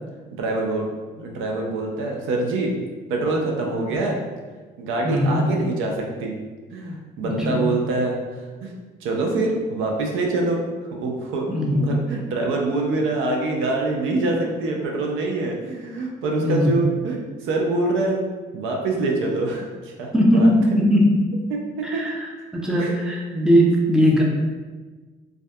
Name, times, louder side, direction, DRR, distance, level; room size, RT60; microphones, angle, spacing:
voice 1, 0.4-0.9 1.1-2.7 3.1-4.2 4.8-6.4 6.7-8.1 8.6-8.7 9.0-10.6 10.9-18.2 18.5-20.5 21.5-22.1 22.8-23.0 23.3-23.7, right 2 dB, 85° right, 0 dB, 0.5 m, -25 dB
voice 2, 5.0-5.4 7.2-7.6 11.5-11.9 16.4-16.8 20.1-21.0 21.8-24.2, equal, 5° right, -2 dB, 0.4 m, -19 dB
2.5 x 2.3 x 2.2 m, 1.3 s
cardioid pair, 90°, 20 cm